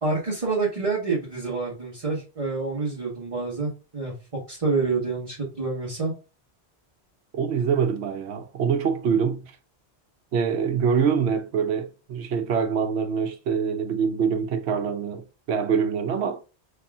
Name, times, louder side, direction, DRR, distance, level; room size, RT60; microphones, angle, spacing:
voice 1, 0.0-4.1 4.5-6.1, right 4 dB, 35° right, 1.2 m, -27 dB
voice 2, 7.3-9.5 10.3-16.4, right 6 dB, 80° right, 1.0 m, -25 dB
3.3 x 2.8 x 3.5 m
omnidirectional pair, 1.1 m